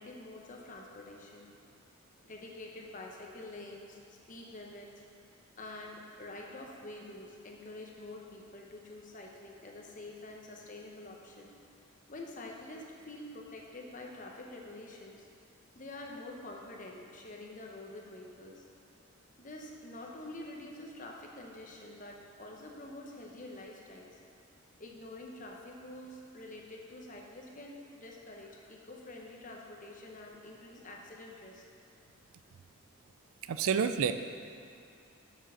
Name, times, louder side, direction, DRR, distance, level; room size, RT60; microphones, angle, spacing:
voice 1, 0.0-1.5 2.2-4.9 5.6-11.5 12.1-15.3 15.7-18.7 19.4-24.2 24.8-31.6, left 2 dB, 35° left, 0 dB, 0.9 m, -47 dB
voice 2, 33.5-34.1, right 7 dB, 70° right, 10 dB, 0.4 m, -28 dB
6.8 x 6.3 x 6.3 m, 2.4 s
head